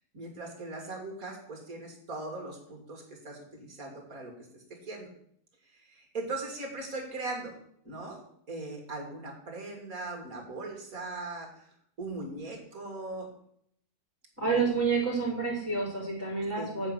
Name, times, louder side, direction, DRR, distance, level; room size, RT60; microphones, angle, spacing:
voice 1, 0.1-5.1 5.7-7.6 7.8-8.2 8.5-13.3 14.4-14.5 16.6-16.7, right 2 dB, 60° right, 2 dB, 2.6 m, -40 dB
voice 2, 14.4-16.9, right 4 dB, 10° right, -7 dB, 3.7 m, -29 dB
8.2 x 5.3 x 7.7 m, 0.67 s
omnidirectional pair, 1.7 m